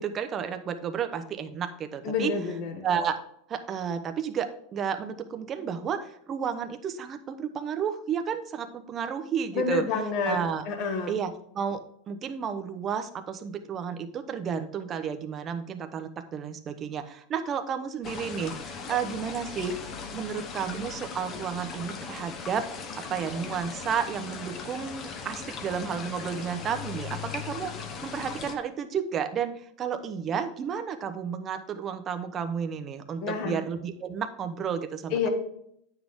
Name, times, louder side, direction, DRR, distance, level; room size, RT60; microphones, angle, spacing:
voice 1, 0.0-2.3 2.8-3.2 3.5-10.6 11.1-19.8 20.1-27.7 28.0-35.3, right 7 dB, 25° right, 8 dB, 0.8 m, -32 dB
voice 2, 2.0-2.7 9.5-10.4 10.7-11.2 33.2-33.6 35.1-35.3, left 5 dB, 45° left, 5 dB, 1.6 m, -28 dB
sound 1, 18.0-28.5, left 5 dB, 30° left, 1.0 m, -38 dB
9.4 x 6.2 x 3.6 m, 0.71 s
supercardioid pair, 150°, 0 cm